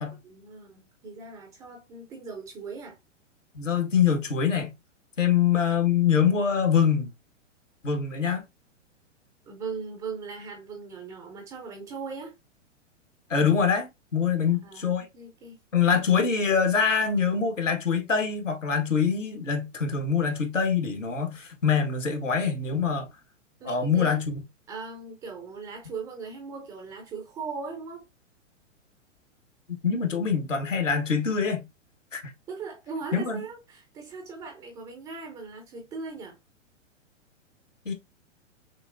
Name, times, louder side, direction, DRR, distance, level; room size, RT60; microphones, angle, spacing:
voice 1, 0.2-3.0 9.4-12.3 14.4-15.6 23.6-24.2 24.7-28.1 32.5-36.4, right 4 dB, 10° right, 0.3 m, -39 dB
voice 2, 3.5-4.7 5.2-7.1 7.8-8.4 13.3-15.0 15.7-23.1 23.6-24.3 29.7-31.6 32.1-32.2 33.1-33.4 37.8-37.9, left 6 dB, 80° left, 1.3 m, -24 dB
6.0 x 2.5 x 2.5 m
figure-of-eight pair, 110°, 37 cm